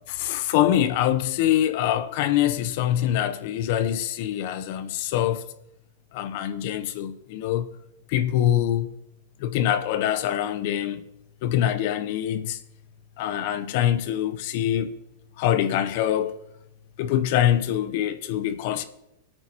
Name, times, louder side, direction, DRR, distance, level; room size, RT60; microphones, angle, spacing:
voice 1, 0.1-5.4 6.1-7.7 8.1-8.9 9.4-11.0 11.4-12.6 13.2-15.0 15.4-16.4 17.0-18.8, left 11 dB, 60° left, 0.6 m, -24 dB
20.5 x 8.9 x 2.8 m
hypercardioid pair, 115°, 0 cm